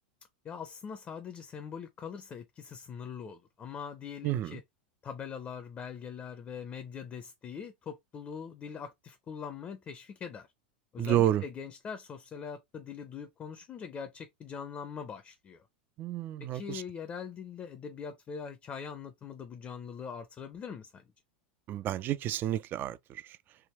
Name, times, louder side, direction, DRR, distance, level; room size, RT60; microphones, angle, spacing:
voice 1, 0.4-4.6 5.0-10.5 10.9-15.7 16.4-21.1, left 7 dB, 30° left, 0.6 m, -42 dB
voice 2, 4.2-4.6 11.0-11.4 16.0-16.8 21.7-23.2, right 12 dB, 35° right, 0.3 m, -30 dB
3.5 x 2.2 x 3.0 m
hypercardioid pair, 90°, 6 cm